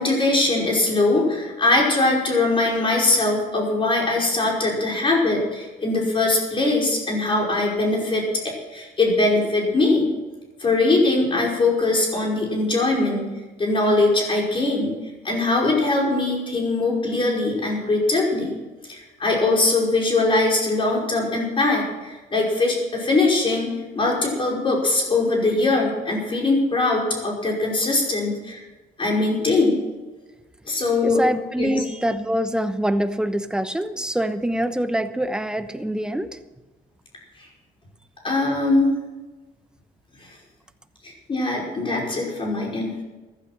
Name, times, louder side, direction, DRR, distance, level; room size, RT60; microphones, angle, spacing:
voice 1, 0.0-10.1 10.6-13.3 13.6-14.9 15.2-18.5 18.9-28.6 29.0-29.8 30.7-31.2 31.6-31.8 38.2-38.9 41.0-42.9, left 2 dB, 30° left, -2 dB, 5.3 m, -21 dB
voice 2, 31.0-36.3, right 1 dB, 5° right, 9 dB, 1.0 m, -25 dB
15.0 x 12.0 x 6.0 m, 1.2 s
cardioid pair, 110°, 17 cm